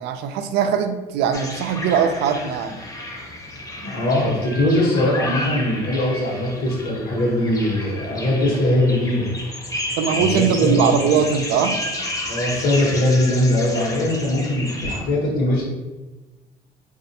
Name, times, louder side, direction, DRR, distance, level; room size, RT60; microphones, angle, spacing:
voice 1, 0.0-2.8 10.0-11.8, right 7 dB, 85° right, 8 dB, 0.4 m, -20 dB
sound 1, 1.3-15.0, left 1 dB, 20° left, 0.7 m, -31 dB
voice 2, 3.8-9.3 10.1-10.9 12.2-15.6, left 1 dB, 60° left, -5 dB, 1.1 m, -21 dB
4.2 x 2.4 x 2.7 m, 1.2 s
cardioid pair, 110°, 17 cm